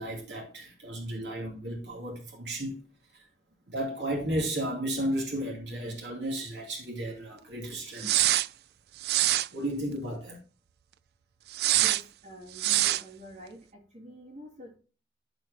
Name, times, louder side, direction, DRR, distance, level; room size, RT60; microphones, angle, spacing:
voice 1, 0.0-2.8 3.1-3.2 3.7-8.3 9.5-10.4, right 1 dB, 85° right, 2.6 m, -34 dB
sound 1, 8.0-8.5 9.0-9.5 11.5-12.0 12.6-13.0, right 14 dB, 60° right, 0.3 m, -24 dB
voice 2, 11.7-13.7 13.9-14.8, right 1 dB, 40° right, 2.7 m, -47 dB
14.0 x 4.8 x 2.7 m
head